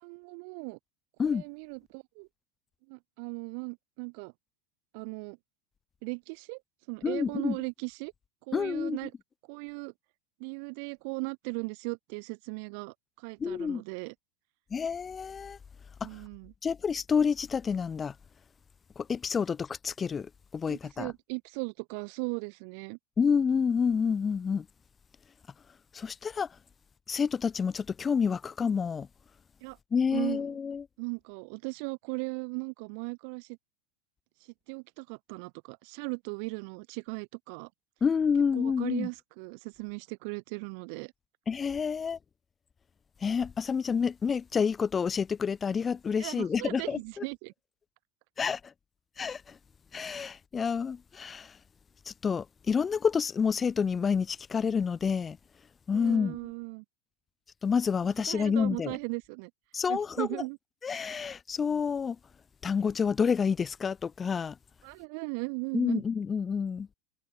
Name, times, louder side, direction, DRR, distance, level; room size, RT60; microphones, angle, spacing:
voice 1, 0.0-0.8 1.2-2.3 2.9-4.3 4.9-5.4 6.0-6.6 6.9-8.1 8.5-9.1 9.5-9.9 10.4-14.1 16.0-16.5 20.7-23.0 29.6-29.8 30.1-30.5 31.0-33.5 34.7-37.7 38.5-41.1 46.2-47.5 55.9-56.8 58.3-59.5 59.9-60.6 64.8-66.0, right 38 dB, 60° right, 2.1 m, -37 dB
voice 2, 7.0-7.6 8.5-9.0 13.4-13.8 14.7-15.6 16.0-16.1 16.6-18.1 19.0-21.1 23.2-24.7 25.9-26.5 27.1-29.1 29.9-30.9 38.0-39.1 41.5-42.2 43.2-47.2 48.4-48.7 49.2-49.6 49.9-51.6 52.1-55.4 55.9-56.4 57.6-59.0 59.7-60.3 60.8-62.2 62.6-64.6 65.7-66.9, left 6 dB, 25° left, 0.8 m, -29 dB
hypercardioid pair, 95°, 0 cm